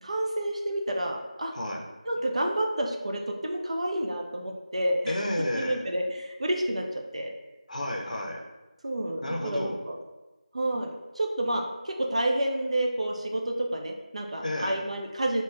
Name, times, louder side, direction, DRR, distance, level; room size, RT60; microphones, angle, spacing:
voice 1, 0.0-1.5 2.1-5.1 5.6-6.8 7.1-7.3 8.8-9.9 10.5-10.9 11.2-15.4, right 1 dB, 55° right, 2 dB, 0.4 m, -29 dB
voice 2, 1.5-1.8 5.1-5.8 7.7-8.4 9.2-9.8 14.4-14.8, left 1 dB, 75° left, 1 dB, 0.5 m, -31 dB
3.2 x 2.1 x 2.4 m, 1.1 s
figure-of-eight pair, 170°, 4 cm